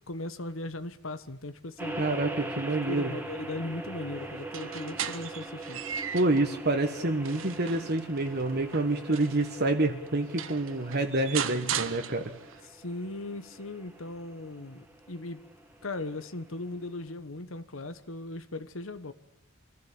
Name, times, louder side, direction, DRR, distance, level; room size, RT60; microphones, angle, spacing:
voice 1, 0.0-1.9 2.8-5.8 12.6-15.4 15.8-19.1, left 2 dB, 70° left, 1.3 m, -38 dB
sound 1, 1.8-17.1, right 2 dB, 10° right, 2.4 m, -42 dB
voice 2, 2.0-3.1 6.1-12.2, right 2 dB, 50° right, 1.6 m, -27 dB
sound 2, 4.4-6.5 7.0-9.5 10.1-10.2 10.4-12.6, right 8 dB, 70° right, 1.3 m, -37 dB
25.0 x 15.5 x 8.7 m
head